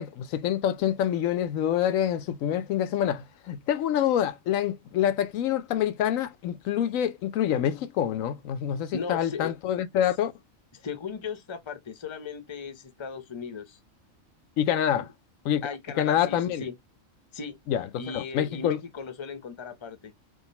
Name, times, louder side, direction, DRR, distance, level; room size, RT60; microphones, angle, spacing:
voice 1, 0.0-10.3 14.6-15.1 15.5-15.6 16.0-16.6 17.7-17.9 18.1-18.8, left 10 dB, 80° left, 1.0 m, -26 dB
voice 2, 8.9-9.5 10.7-13.8 14.9-15.1 15.6-16.7 17.3-17.6 18.0-20.1, left 5 dB, 25° left, 0.7 m, -37 dB
3.7 x 3.3 x 4.1 m
omnidirectional pair, 1.4 m